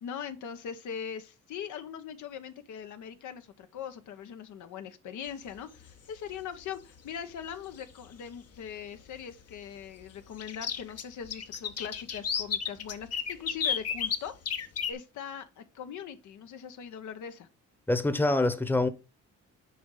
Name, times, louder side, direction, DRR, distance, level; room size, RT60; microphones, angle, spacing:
voice 1, 0.0-14.3 14.9-17.5, left 8 dB, 75° left, 1.0 m, -41 dB
sound 1, 5.6-5.9 7.5-7.6 8.0-8.1 10.4-14.9, left 7 dB, 55° left, 1.1 m, -32 dB
voice 2, 17.9-18.9, left 2 dB, 5° left, 0.9 m, -25 dB
6.9 x 4.9 x 3.8 m
cardioid pair, 90°, 30 cm